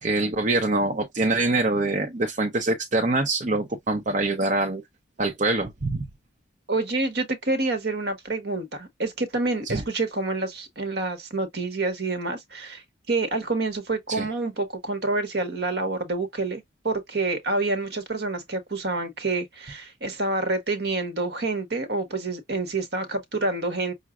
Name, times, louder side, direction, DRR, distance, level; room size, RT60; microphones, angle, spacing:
voice 1, 0.0-4.8 5.2-6.1 9.7-9.8 14.1-14.3, right 2 dB, 40° right, 0.8 m, -24 dB
voice 2, 6.7-12.8 13.1-23.9, right 3 dB, 55° right, 1.3 m, -28 dB
5.9 x 2.6 x 2.4 m
head